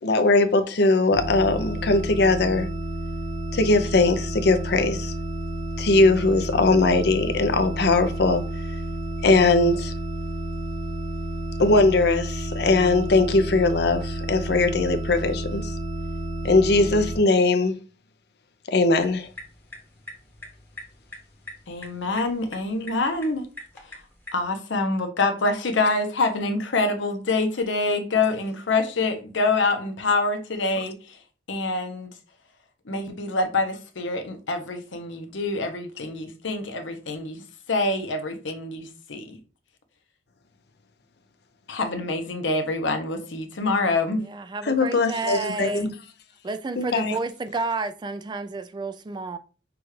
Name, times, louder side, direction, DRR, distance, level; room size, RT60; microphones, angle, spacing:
voice 1, 0.0-2.7 3.5-5.1 5.8-8.4 9.2-9.9 11.6-15.7 16.4-17.7 18.7-19.3 44.6-45.9 46.8-47.2, left 3 dB, 60° left, 0.5 m, -20 dB
sound 1, 1.1-17.2, right 1 dB, 65° right, 1.2 m, -31 dB
sound 2, 18.8-24.5, left 2 dB, 10° left, 0.9 m, -45 dB
voice 2, 21.7-23.5 24.3-31.0 31.5-32.1 32.9-37.4 37.7-39.4 41.7-44.2, left 3 dB, 90° left, 0.8 m, -26 dB
voice 3, 44.2-45.9 46.4-49.4, right 3 dB, 25° right, 0.3 m, -30 dB
6.0 x 2.4 x 3.2 m
head